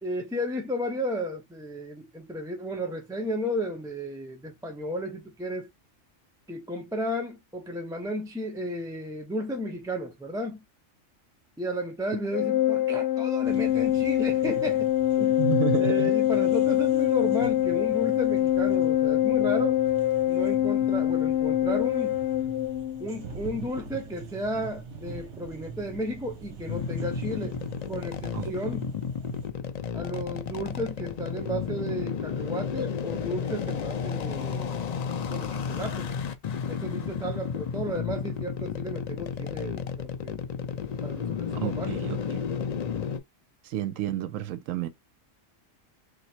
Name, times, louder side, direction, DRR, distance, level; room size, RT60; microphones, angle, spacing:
voice 1, 0.0-5.7 6.5-10.6 11.6-14.9 15.2-15.4 15.8-19.8 20.3-22.2 23.0-27.6 27.9-28.9 29.9-34.7 35.3-36.1 36.7-40.4 41.0-42.0, equal, 5° right, 0.6 m, -33 dB
Organ, 12.3-23.1, left 12 dB, 65° left, 0.9 m, -24 dB
sound 1, 13.4-29.5, right 4 dB, 60° right, 1.2 m, -44 dB
voice 2, 15.4-16.1 28.3-28.5 41.6-42.4 43.6-44.9, right 10 dB, 80° right, 1.0 m, -30 dB
sound 2, 26.7-43.2, left 6 dB, 80° left, 0.3 m, -32 dB
3.1 x 2.6 x 4.3 m
omnidirectional pair, 1.4 m